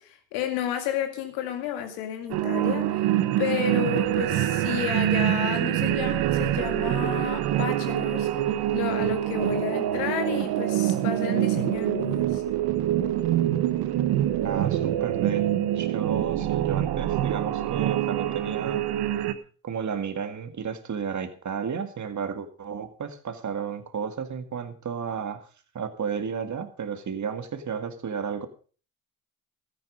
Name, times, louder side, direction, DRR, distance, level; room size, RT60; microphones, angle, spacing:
voice 1, 0.0-8.3 8.7-12.4, left 10 dB, 85° left, 7 dB, 2.1 m, -32 dB
sound 1, 2.3-19.3, right 13 dB, 75° right, 1.1 m, -25 dB
voice 2, 14.4-15.5 15.7-18.8 19.6-25.4 25.7-28.5, right 6 dB, 45° right, 9 dB, 2.1 m, -32 dB
13.5 x 10.5 x 5.2 m, 0.40 s
hypercardioid pair, 50°, 39 cm